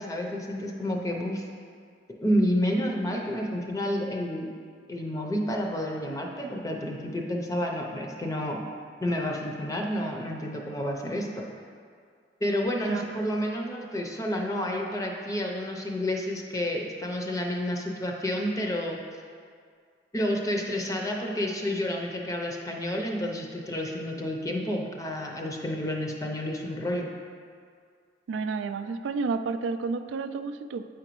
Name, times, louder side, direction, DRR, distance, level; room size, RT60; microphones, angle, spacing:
voice 1, 0.0-1.4 2.2-4.5 4.9-8.6 9.0-11.5 12.4-19.0 20.1-27.1, equal, 20° left, 0 dB, 0.5 m, -30 dB
voice 2, 12.9-13.2 28.3-30.9, right 4 dB, 90° right, 10 dB, 0.3 m, -31 dB
8.5 x 5.0 x 3.0 m, 2.1 s
head